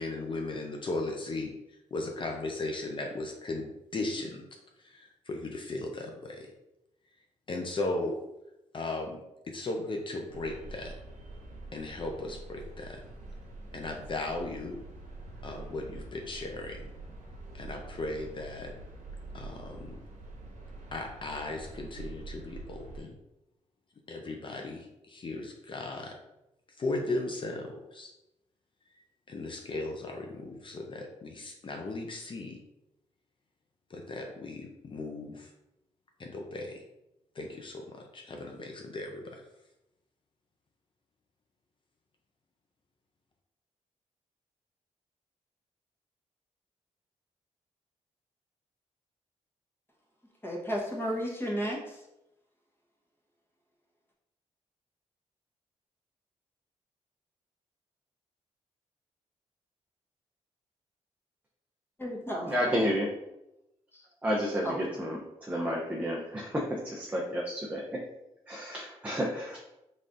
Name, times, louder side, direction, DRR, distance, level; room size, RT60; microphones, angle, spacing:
voice 1, 0.0-4.4 4.8-6.5 7.5-8.1 8.7-10.9 11.7-13.0 13.7-14.8 15.4-16.9 17.5-18.7 19.3-20.0 20.9-23.1 24.1-26.1 26.7-28.1 28.9-32.6 33.9-35.5 36.2-36.8 37.3-39.4, left 2 dB, 40° left, 0.5 m, -37 dB
sound 1, 10.3-23.0, right 2 dB, 85° right, 0.7 m, -45 dB
voice 2, 50.4-52.0 62.0-62.9 64.6-64.8, equal, 20° left, 1.1 m, -33 dB
voice 3, 62.5-63.1 64.2-68.0 68.5-69.6, equal, 10° right, 0.6 m, -31 dB
3.9 x 3.2 x 2.5 m
cardioid pair, 80°, 13 cm